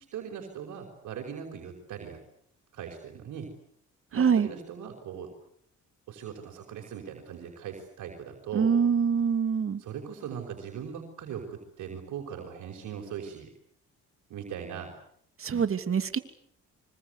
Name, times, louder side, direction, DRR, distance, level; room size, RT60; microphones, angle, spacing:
voice 1, 0.1-2.2 2.7-3.5 4.1-5.3 6.1-8.7 9.8-13.5 14.3-14.9, right 8 dB, 80° right, 1 dB, 5.6 m, -39 dB
voice 2, 4.2-4.5 8.5-9.8 15.4-16.2, right 6 dB, 45° right, 9 dB, 2.9 m, -24 dB
25.5 x 25.5 x 8.3 m, 0.67 s
cardioid pair, 90°, 30 cm